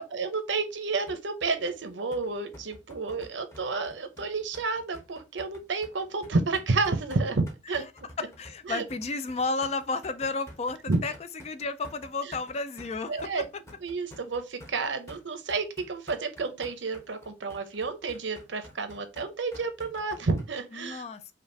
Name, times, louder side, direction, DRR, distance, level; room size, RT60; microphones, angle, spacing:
voice 1, 0.1-7.8 8.7-8.8 10.9-11.0 13.1-13.4 13.8-21.0, right 3 dB, 75° right, 0.8 m, -30 dB
sound 1, 1.1-20.5, left 1 dB, 15° left, 0.9 m, -50 dB
voice 2, 8.2-11.1 11.4-13.3 20.7-21.2, left 3 dB, 35° left, 0.4 m, -32 dB
5.2 x 2.4 x 2.6 m
head